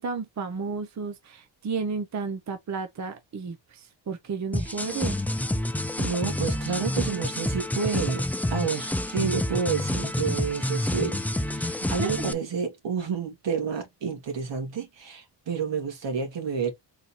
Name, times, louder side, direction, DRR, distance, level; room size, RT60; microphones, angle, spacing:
voice 1, 0.0-5.2 12.0-12.1, right 5 dB, 40° right, 0.8 m, -32 dB
sound 1, 4.5-12.3, left 1 dB, 5° left, 0.3 m, -28 dB
voice 2, 4.6-5.1 6.0-8.2 8.5-16.7, right 6 dB, 75° right, 2.3 m, -30 dB
4.2 x 3.7 x 2.9 m
cardioid pair, 115°, 43 cm